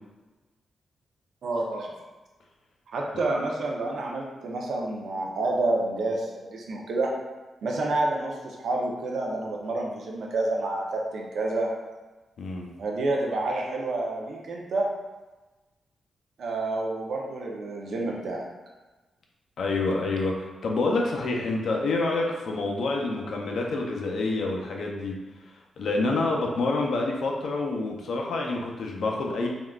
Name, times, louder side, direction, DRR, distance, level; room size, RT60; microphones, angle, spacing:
voice 1, 1.4-1.9 2.9-7.1 7.6-11.7 12.8-14.9 16.4-18.4, right 2 dB, 65° right, -1 dB, 0.5 m, -29 dB
voice 2, 19.6-25.1 25.8-29.5, left 3 dB, 60° left, 0 dB, 0.5 m, -27 dB
3.6 x 2.3 x 2.3 m, 1.2 s
wide cardioid pair, 155°, 0 cm